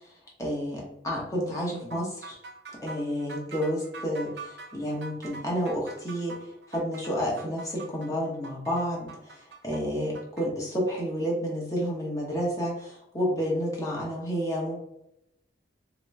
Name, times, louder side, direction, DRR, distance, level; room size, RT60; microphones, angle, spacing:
voice 1, 0.4-2.4 2.8-14.8, equal, 15° left, -3 dB, 0.9 m, -30 dB
sound 1, 1.9-10.5, right 3 dB, 65° right, 0.6 m, -44 dB
3.6 x 3.0 x 3.2 m, 0.81 s
head